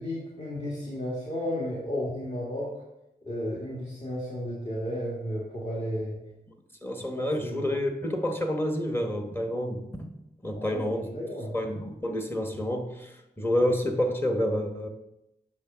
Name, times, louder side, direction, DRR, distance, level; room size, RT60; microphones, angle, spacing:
voice 1, 0.0-2.7 3.3-6.2 7.1-7.7 10.6-11.5, equal, 35° left, -5 dB, 1.8 m, -33 dB
voice 2, 6.8-10.1 10.4-11.1 11.5-14.9, left 1 dB, 10° left, 4 dB, 1.0 m, -29 dB
8.2 x 3.7 x 6.0 m, 0.89 s
wide cardioid pair, 95°, 18 cm